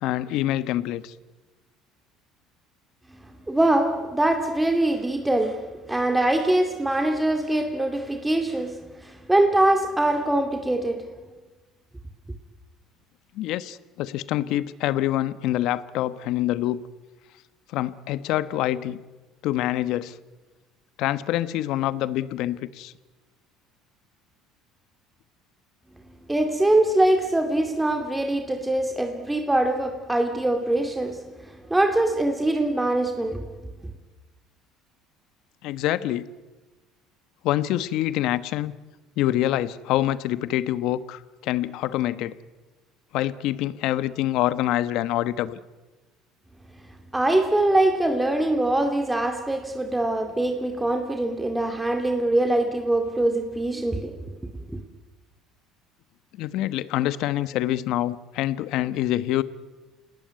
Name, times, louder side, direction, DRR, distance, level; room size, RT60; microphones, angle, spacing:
voice 1, 0.0-1.1 13.3-16.8 17.7-19.0 19.4-20.2 21.0-22.9 35.6-36.2 37.4-38.8 39.2-42.3 43.1-45.6 56.4-59.4, left 14 dB, 70° left, 1.1 m, -26 dB
voice 2, 3.1-11.1 26.3-33.5 47.1-54.3 54.7-54.8, right 1 dB, 10° right, 2.4 m, -23 dB
28.0 x 19.0 x 9.4 m
supercardioid pair, 90°, 0 cm